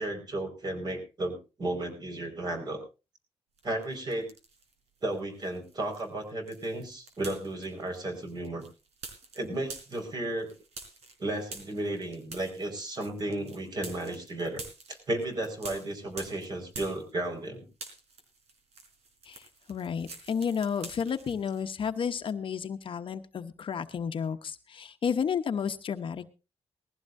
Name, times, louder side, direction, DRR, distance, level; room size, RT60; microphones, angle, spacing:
voice 1, 0.0-2.8 3.6-4.3 5.0-8.6 9.4-10.5 11.2-14.6 14.9-17.7, right 1 dB, 40° right, 4 dB, 5.0 m, -34 dB
sound 1, 3.6-4.7 5.1-17.5 17.7-21.6, right 4 dB, 85° right, 4.1 m, -47 dB
voice 2, 19.2-26.3, left 7 dB, 55° left, 9 dB, 1.0 m, -32 dB
19.5 x 15.5 x 2.7 m, 0.30 s
wide cardioid pair, 145°, 11 cm